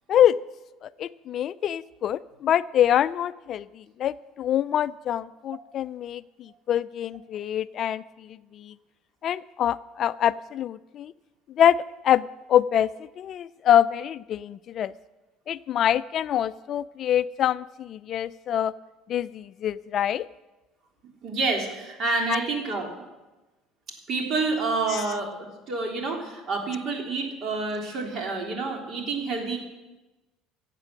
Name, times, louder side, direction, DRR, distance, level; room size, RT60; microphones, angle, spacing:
voice 1, 0.8-8.7 9.2-11.1 11.6-11.8 12.0-12.9 13.2-14.9 15.5-18.7 19.1-20.3 22.3-22.4 24.9-25.0, left 10 dB, 50° left, 16 dB, 0.3 m, -25 dB
voice 2, 21.2-22.9 24.1-29.6, right 3 dB, 45° right, 1 dB, 3.5 m, -28 dB
15.5 x 8.2 x 7.6 m, 1.1 s
cardioid pair, 120°, 0 cm